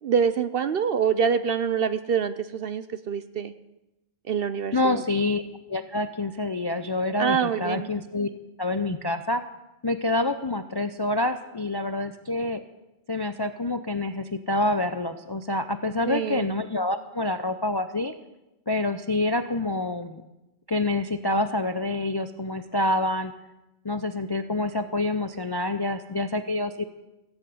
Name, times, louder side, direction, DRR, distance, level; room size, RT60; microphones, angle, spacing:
voice 1, 0.0-3.5 4.3-5.0 7.2-7.9 16.1-16.5, right 7 dB, 55° right, 13 dB, 0.7 m, -25 dB
voice 2, 4.7-5.4 5.7-8.3 8.6-9.4 9.8-12.6 13.1-18.1 18.7-20.2 20.7-23.3 23.8-26.8, left 2 dB, 35° left, 10 dB, 0.4 m, -27 dB
16.0 x 8.0 x 8.5 m, 0.97 s
omnidirectional pair, 1.3 m